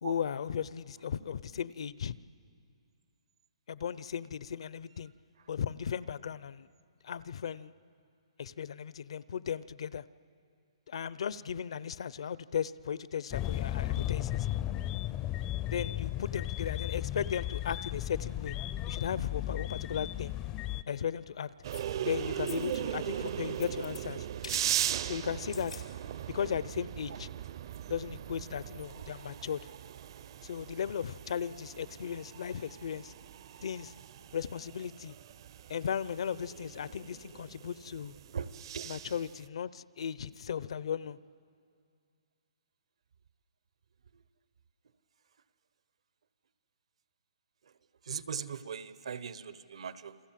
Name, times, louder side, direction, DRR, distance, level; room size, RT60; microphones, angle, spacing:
voice 1, 0.0-2.1 3.7-5.1 5.5-6.7 7.0-7.7 8.4-10.0 10.9-14.5 15.7-18.5 18.9-20.3 20.9-21.5 22.0-24.3 25.0-25.7 26.3-27.3 27.9-29.7 30.4-33.1 33.6-33.9 34.3-35.1 35.7-38.1 38.9-41.2, left 8 dB, 65° left, 18 dB, 0.7 m, -36 dB
sound 1, 13.3-20.8, left 14 dB, 20° left, 0.5 m, -35 dB
sound 2, 21.6-39.5, right 10 dB, 45° right, 0.7 m, -39 dB
sound 3, 21.7-22.1 22.5-22.9 23.2-24.0 24.4-24.7 25.4-25.9 26.2-26.3, left 5 dB, 90° left, 3.8 m, -47 dB
voice 2, 48.0-50.2, right 6 dB, 70° right, 14 dB, 1.2 m, -39 dB
28.5 x 23.0 x 7.6 m, 2.3 s
hypercardioid pair, 155°, 3 cm